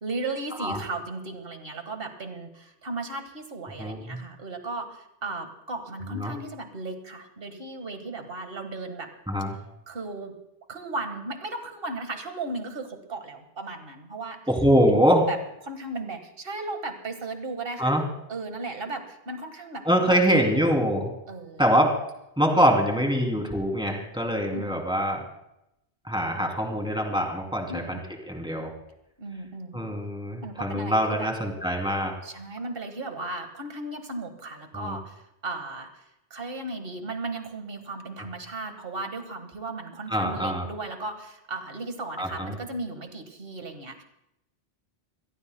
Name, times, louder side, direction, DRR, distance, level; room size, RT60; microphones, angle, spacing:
voice 1, 0.0-9.1 9.9-10.4 10.7-14.4 14.9-15.4 15.6-18.0 18.3-20.2 20.5-20.7 21.3-21.6 24.5-24.8 27.7-28.1 29.2-30.0 30.4-31.3 32.2-36.0 36.3-44.0, right 2 dB, 55° right, 6 dB, 1.8 m, -36 dB
voice 2, 3.8-4.2 6.2-6.3 9.3-9.5 14.5-15.2 17.8-18.0 19.8-21.1 21.6-21.9 22.4-25.2 26.0-28.0 28.3-28.7 29.7-32.1 34.7-35.0 40.1-40.6 42.2-42.5, equal, 5° right, 1 dB, 2.8 m, -24 dB
26.5 x 18.0 x 2.2 m, 0.83 s
omnidirectional pair, 1.1 m